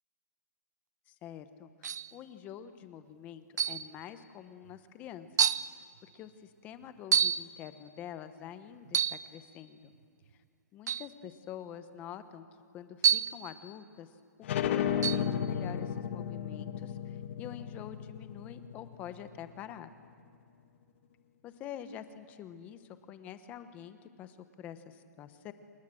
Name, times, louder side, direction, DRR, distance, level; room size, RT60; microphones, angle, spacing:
voice 1, 1.1-5.5 6.0-9.9 10.7-12.5 12.7-14.1 14.6-19.9 21.4-25.5, left 9 dB, 15° left, 11 dB, 0.9 m, -46 dB
sound 1, 1.8-2.1 3.6-3.9 4.7-4.8 5.4-5.7 7.1-7.5 8.9-9.3 10.9-11.1 13.0-13.4 15.0-15.3, right 7 dB, 85° right, 0.8 m, -28 dB
sound 2, 14.4-19.7, left 9 dB, 45° left, 1.5 m, -34 dB
28.0 x 24.5 x 7.7 m, 2.4 s
hypercardioid pair, 175°, 9 cm